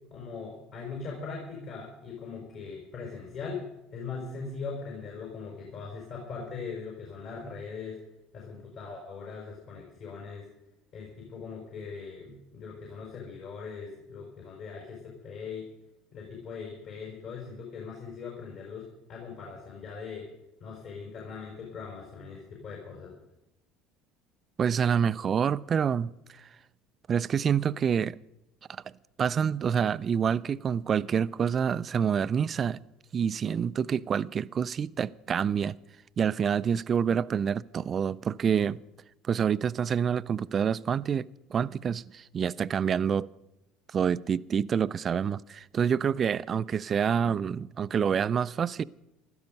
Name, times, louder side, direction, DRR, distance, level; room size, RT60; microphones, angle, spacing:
voice 1, 0.1-3.7 3.9-8.0 8.3-10.5 10.9-15.7 16.1-20.3 20.6-23.1, left 5 dB, 60° left, 5.3 m, -40 dB
voice 2, 24.6-26.5 27.1-28.2 28.7-28.8 29.2-32.8 33.1-35.8 36.2-38.8 39.2-43.3 43.9-48.8, right 7 dB, 40° right, 0.4 m, -27 dB
15.5 x 12.5 x 5.4 m
hypercardioid pair, 75°, 0 cm